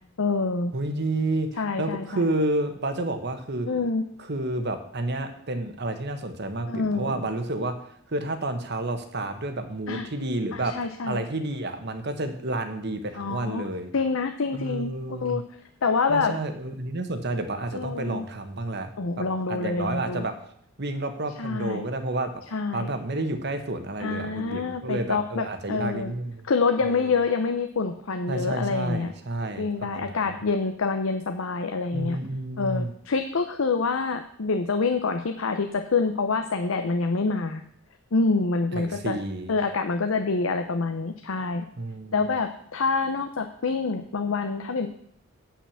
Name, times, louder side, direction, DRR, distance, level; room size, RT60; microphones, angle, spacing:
voice 1, 0.2-0.7 1.6-2.3 3.7-4.0 6.7-7.3 9.9-10.1 10.5-11.2 13.1-13.7 13.9-15.4 15.8-16.3 17.7-18.3 19.0-20.3 21.4-21.9 22.5-22.9 24.0-26.1 26.5-29.1 29.6-32.2 32.6-37.6 38.1-39.2 39.5-41.7 42.1-44.9, left 4 dB, 90° left, 7 dB, 0.7 m, -26 dB
voice 2, 0.7-3.7 4.2-7.7 8.1-10.7 11.0-13.9 14.5-15.4 16.1-20.3 20.8-22.3 22.7-26.5 26.8-27.1 28.3-30.4 31.9-32.9 38.7-39.6 41.8-42.2, right 2 dB, 55° right, 8 dB, 1.2 m, -30 dB
8.6 x 5.9 x 7.2 m, 0.67 s
head